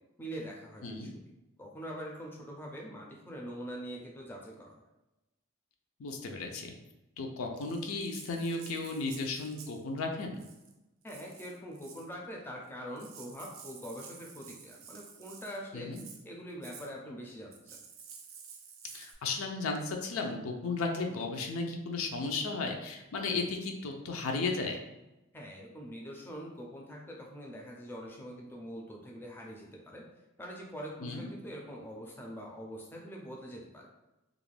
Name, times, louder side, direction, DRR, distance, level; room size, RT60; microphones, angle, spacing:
voice 1, 0.2-1.1 1.6-4.8 11.0-15.9 16.2-17.8 25.3-30.1 30.4-33.9, equal, 10° left, -1 dB, 0.4 m, -44 dB
voice 2, 0.8-1.1 6.0-6.7 7.2-10.4 15.7-16.0 18.9-24.8 31.0-31.3, left 3 dB, 85° left, 3 dB, 0.4 m, -34 dB
Rattle (instrument), 7.6-9.8 10.3-10.7 11.1-12.1 12.7-12.8 13.0-15.6 15.9-16.2 16.6-16.9 17.5-19.1, right 6 dB, 75° right, 0.4 m, -51 dB
2.4 x 2.1 x 3.2 m, 0.98 s
head